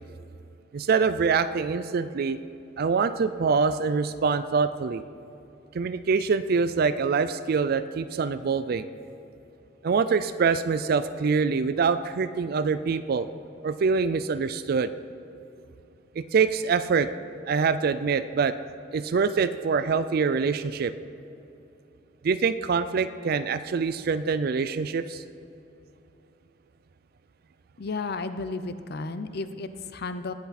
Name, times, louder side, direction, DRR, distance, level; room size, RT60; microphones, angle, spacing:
voice 1, 0.7-2.4 2.8-5.0 5.7-8.9 9.8-13.3 13.6-14.9 16.2-17.1 17.5-18.5 18.9-20.9 22.2-25.2, right 5 dB, 55° right, 12 dB, 0.4 m, -25 dB
voice 2, 27.8-30.3, left 3 dB, 60° left, 11 dB, 0.6 m, -33 dB
19.0 x 8.1 x 4.2 m, 2.8 s
head